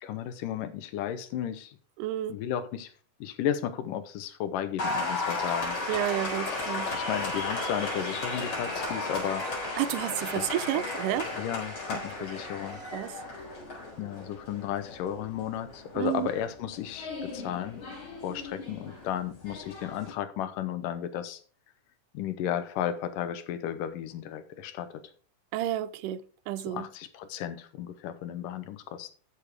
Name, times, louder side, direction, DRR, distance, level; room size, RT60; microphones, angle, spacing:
voice 1, 0.0-1.8 2.3-2.9 3.2-5.8 6.9-9.4 10.3-10.5 11.4-12.8 14.0-17.8 18.2-21.4 22.1-24.9 26.7-29.1, left 10 dB, 85° left, 2.6 m, -34 dB
voice 2, 2.0-2.4 5.9-6.9 9.8-11.3 11.9-12.0 12.9-13.2 16.0-16.3 25.5-26.9, right 13 dB, 80° right, 2.1 m, -31 dB
Applause, 4.8-20.1, left 2 dB, 50° left, 5.5 m, -35 dB
13.5 x 6.7 x 3.5 m
omnidirectional pair, 3.7 m